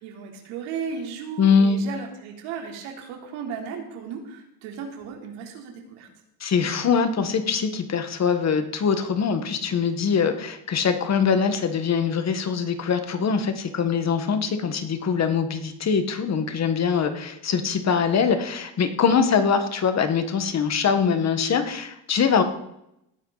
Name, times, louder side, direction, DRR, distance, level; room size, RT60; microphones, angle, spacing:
voice 1, 0.0-6.1, right 6 dB, 85° right, 2 dB, 3.5 m, -35 dB
voice 2, 1.4-1.8 6.4-22.4, left 6 dB, 35° left, 8 dB, 1.5 m, -23 dB
18.0 x 10.5 x 4.0 m, 0.80 s
cardioid pair, 145°, 48 cm